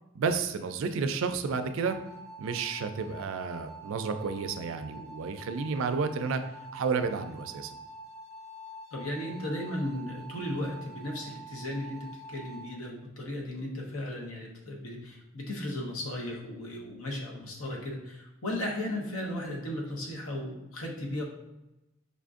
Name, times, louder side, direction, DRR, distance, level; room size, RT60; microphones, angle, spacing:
voice 1, 0.1-2.0 2.4-6.4 6.7-7.7, right 5 dB, 65° right, 8 dB, 0.3 m, -31 dB
sound 1, 1.5-12.7, right 3 dB, 15° right, 0.6 m, -47 dB
voice 2, 8.9-21.2, left 1 dB, 90° left, -1 dB, 0.9 m, -36 dB
5.0 x 2.5 x 2.4 m, 0.96 s
head